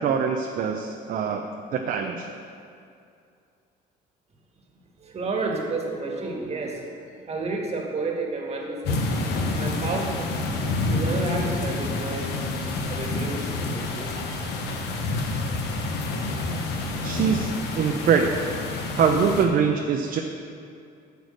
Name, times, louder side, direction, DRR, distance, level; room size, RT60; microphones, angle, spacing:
voice 1, 0.0-1.4 1.7-2.3 17.0-18.3 19.0-20.2, right 6 dB, 55° right, 3 dB, 0.7 m, -23 dB
voice 2, 5.0-6.8 7.2-9.0 9.6-10.3 10.8-12.3 12.9-14.5, right 3 dB, 40° right, 0 dB, 1.8 m, -31 dB
sound 1, 8.8-19.5, left 2 dB, 75° left, 1.1 m, -28 dB
8.2 x 6.9 x 6.4 m, 2.4 s
cardioid pair, 110°, 17 cm